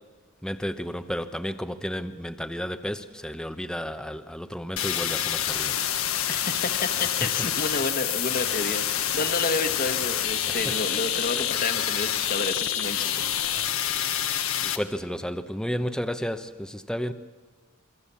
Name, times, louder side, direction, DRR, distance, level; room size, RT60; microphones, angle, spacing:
voice 1, 0.4-5.8 10.5-10.7 14.6-17.1, equal, 5° left, 0.9 m, -32 dB
sound 1, 4.8-14.8, left 10 dB, 70° left, 1.4 m, -27 dB
voice 2, 6.3-13.7, left 3 dB, 40° left, 1.7 m, -30 dB
27.5 x 23.5 x 7.2 m
head